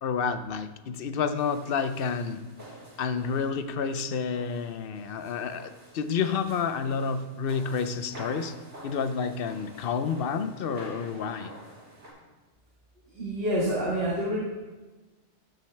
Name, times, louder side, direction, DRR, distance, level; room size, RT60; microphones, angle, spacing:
voice 1, 0.0-2.4 3.0-8.5 8.8-11.5, left 6 dB, 60° left, 11 dB, 0.7 m, -29 dB
sound 1, 1.4-12.1, right 1 dB, 75° right, 3.8 m, -48 dB
voice 2, 13.1-14.4, equal, 55° right, -5 dB, 1.8 m, -27 dB
14.5 x 6.3 x 3.3 m, 1.2 s
omnidirectional pair, 1.2 m